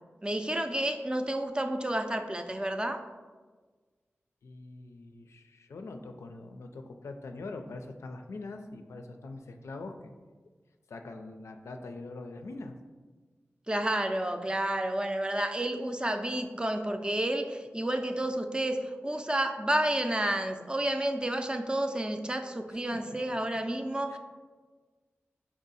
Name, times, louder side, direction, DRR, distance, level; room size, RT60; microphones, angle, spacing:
voice 1, 0.2-3.0 13.7-24.2, right 1 dB, 20° right, 6 dB, 0.4 m, -30 dB
voice 2, 4.4-10.1 10.9-12.7 22.7-23.4 24.1-24.2, left 3 dB, 85° left, 5 dB, 0.4 m, -43 dB
4.5 x 2.7 x 4.0 m, 1.4 s
cardioid pair, 55°, 5 cm